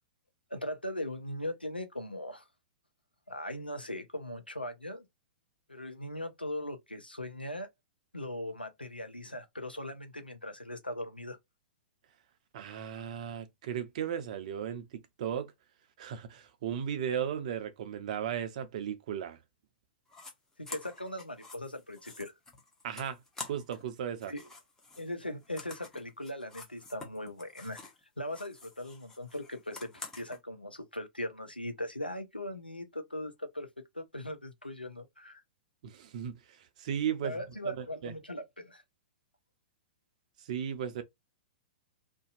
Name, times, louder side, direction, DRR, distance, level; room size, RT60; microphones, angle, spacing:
voice 1, 0.5-2.4 3.3-5.1 5.7-7.7 8.1-11.4 20.6-22.3 24.3-24.5 25.0-27.8 28.2-33.7 33.9-35.4 37.2-38.8, left 1 dB, 90° left, 0.6 m, -39 dB
voice 2, 12.5-15.5 16.0-19.4 22.8-24.3 35.8-38.1 40.4-41.0, right 9 dB, 50° right, 0.5 m, -36 dB
sound 1, 20.1-20.3 20.6-23.9 24.1-28.0 28.3-30.4, left 3 dB, 10° left, 0.8 m, -48 dB
2.6 x 2.1 x 2.5 m
figure-of-eight pair, 105°, 5 cm